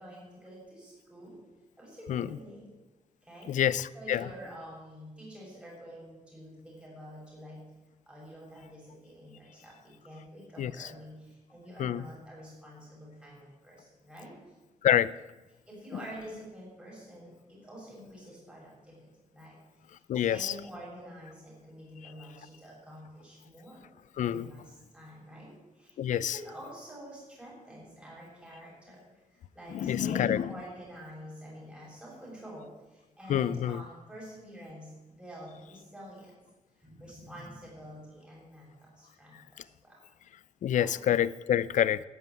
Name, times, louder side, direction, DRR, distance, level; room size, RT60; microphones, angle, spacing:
voice 1, 0.0-1.4 1.8-2.7 3.2-3.5 3.9-7.6 8.1-14.3 15.7-19.1 19.3-19.6 19.9-23.9 24.3-29.0 29.3-36.4 36.8-40.0 40.7-40.9, equal, 10° right, -5 dB, 7.1 m, -48 dB
voice 2, 3.5-4.3 10.6-10.9 11.8-12.1 14.8-15.1 20.1-20.5 22.0-22.1 24.2-24.5 26.0-26.4 29.7-30.5 33.3-33.8 40.6-42.1, left 10 dB, 70° left, 18 dB, 0.6 m, -27 dB
13.5 x 9.5 x 9.1 m, 1.1 s
wide cardioid pair, 160°, 13 cm